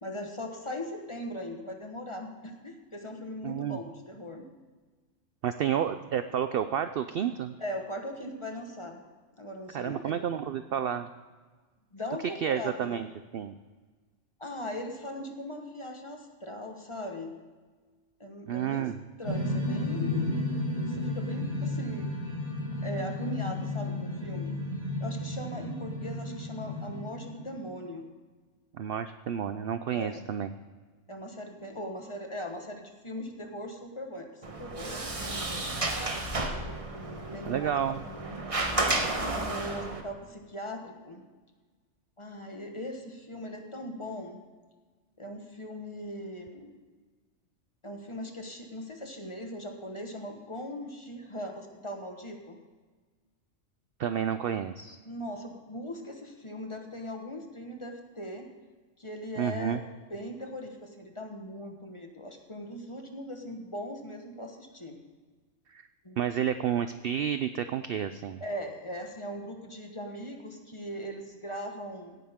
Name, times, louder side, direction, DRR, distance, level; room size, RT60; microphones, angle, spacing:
voice 1, 0.0-4.4 7.6-9.0 9.4-10.1 11.9-13.0 14.4-17.3 18.2-18.9 19.2-20.5 20.8-22.1 22.8-24.5 25.0-28.1 29.9-30.3 31.1-35.8 36.9-38.4 39.4-41.2 42.2-44.4 45.2-46.7 47.8-52.6 55.0-58.5 59.0-59.8 60.1-65.0 66.0-66.2 68.4-72.2, equal, 25° left, 3 dB, 1.3 m, -39 dB
voice 2, 3.4-3.8 5.4-7.5 9.7-11.1 12.4-13.1 13.3-13.5 18.5-19.0 28.7-30.5 37.4-38.0 54.0-55.0 59.4-59.8 65.7-65.9 66.2-68.4, right 9 dB, 65° right, 10 dB, 0.6 m, -30 dB
sound 1, 19.2-27.7, left 2 dB, 80° left, 3.2 m, -33 dB
Sliding door, 34.4-40.0, right 2 dB, 30° right, 1.1 m, -32 dB
17.0 x 10.0 x 3.6 m, 1.4 s
omnidirectional pair, 1.4 m